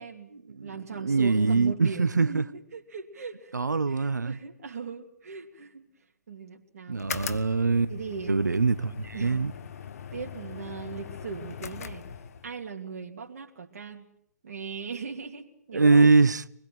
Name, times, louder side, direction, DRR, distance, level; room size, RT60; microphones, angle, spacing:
voice 1, 0.0-2.5 2.7-3.5 3.9-5.9 6.3-7.1 7.9-8.4 8.9-9.4 10.1-12.1 12.4-14.0 14.4-16.1, right 5 dB, 60° right, 2.9 m, -39 dB
voice 2, 1.0-2.4 3.5-4.4 6.9-7.9 8.3-9.5 15.7-16.4, right 3 dB, 90° right, 1.0 m, -23 dB
sound 1, 6.9-12.6, left 8 dB, 60° left, 1.4 m, -40 dB
25.5 x 21.0 x 9.1 m
figure-of-eight pair, 130°, 9 cm